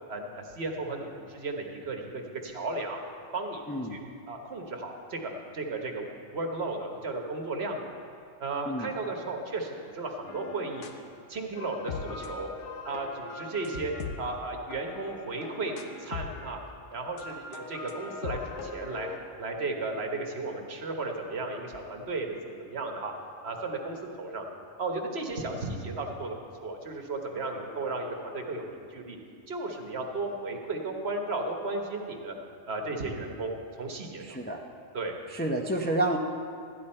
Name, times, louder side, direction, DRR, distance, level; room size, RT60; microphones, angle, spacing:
voice 1, 0.1-3.0 3.3-3.6 3.9-4.0 4.3-7.9 8.4-10.8 11.3-12.5 12.8-13.9 14.2-16.6 16.9-19.1 19.4-23.1 23.4-24.4 24.8-26.3 26.6-29.2 29.5-32.3 32.7-34.5 34.9-35.1, right 3 dB, 65° right, 3 dB, 1.4 m, -34 dB
voice 2, 3.7-4.0 8.7-8.9 34.2-34.6 35.3-36.2, right 1 dB, 15° left, 1 dB, 0.4 m, -29 dB
sound 1, 10.3-11.1 11.4-16.7 17.2-19.2, left 4 dB, 85° left, 1.1 m, -40 dB
13.0 x 10.5 x 4.3 m, 2.4 s
omnidirectional pair, 1.2 m